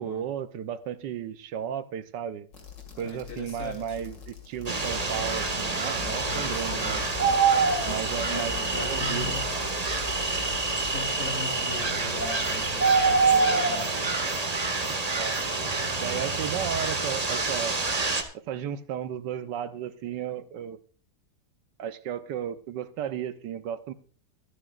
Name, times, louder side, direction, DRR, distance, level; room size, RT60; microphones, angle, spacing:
voice 1, 0.0-2.5 3.0-7.0 7.8-9.3 15.2-15.4 16.0-17.8 18.3-20.8 21.8-23.9, right 9 dB, 80° right, 12 dB, 1.5 m, -34 dB
sound 1, 2.5-13.3, left 6 dB, 90° left, 2.9 m, -42 dB
voice 2, 2.9-4.0 6.0-7.2 8.3-9.6 10.8-14.1, left 4 dB, 55° left, 2 dB, 3.7 m, -40 dB
sound 2, 4.7-18.2, right 4 dB, 25° right, 1.2 m, -26 dB
24.0 x 9.1 x 2.5 m, 0.40 s
omnidirectional pair, 1.9 m